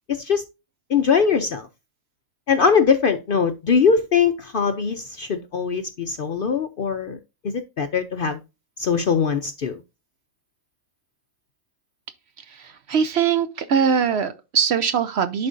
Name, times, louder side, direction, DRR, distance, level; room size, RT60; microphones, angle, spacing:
voice 1, 0.1-0.4 0.9-1.7 2.5-7.2 7.4-8.4 8.8-9.8, left 6 dB, 60° left, 0.6 m, -21 dB
voice 2, 12.5-15.5, right 7 dB, 60° right, 0.8 m, -22 dB
11.0 x 4.3 x 2.6 m
omnidirectional pair, 1.4 m